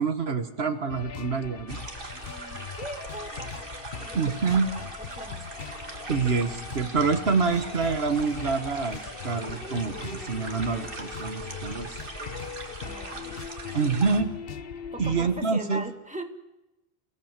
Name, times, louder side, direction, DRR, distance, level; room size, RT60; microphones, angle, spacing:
voice 1, 0.0-1.8 4.1-4.7 6.1-12.0 13.7-14.3 15.0-15.8, right 4 dB, 80° right, 8 dB, 1.7 m, -26 dB
sound 1, 0.9-15.4, left 6 dB, 65° left, 1.2 m, -40 dB
sound 2, 1.7-14.2, right 3 dB, 60° right, 2.1 m, -41 dB
voice 2, 2.2-3.7 4.0-5.5 12.3-13.5 14.9-16.2, right 2 dB, 5° right, 4 dB, 2.0 m, -41 dB
29.5 x 17.0 x 7.5 m, 0.96 s
omnidirectional pair, 1.0 m